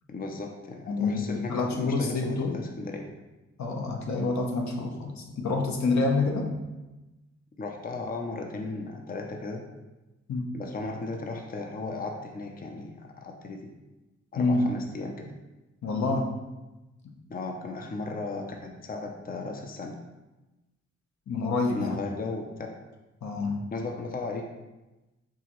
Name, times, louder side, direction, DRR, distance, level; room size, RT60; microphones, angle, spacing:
voice 1, 0.1-3.1 7.6-9.6 10.5-13.7 14.3-15.3 17.3-20.0 21.7-22.7 23.7-24.5, left 3 dB, 30° left, 2 dB, 0.6 m, -36 dB
voice 2, 0.9-2.6 3.6-6.5 10.3-10.5 14.4-14.6 15.8-16.3 21.3-22.0 23.2-23.6, left 3 dB, 65° left, 1 dB, 0.8 m, -27 dB
4.8 x 2.8 x 3.0 m, 1.1 s
cardioid pair, 50°, 30 cm